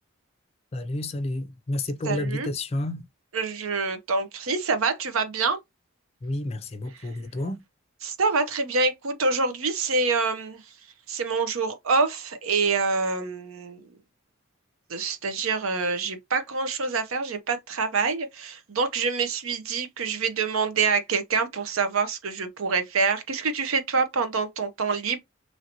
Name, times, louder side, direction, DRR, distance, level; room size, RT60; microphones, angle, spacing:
voice 1, 0.7-3.1 6.2-7.6, left 1 dB, 30° left, 0.4 m, -30 dB
voice 2, 2.0-2.5 3.3-5.6 7.0-7.1 8.0-10.7 11.1-13.8 14.9-25.2, right 4 dB, 85° right, 0.6 m, -26 dB
3.1 x 2.8 x 2.6 m
head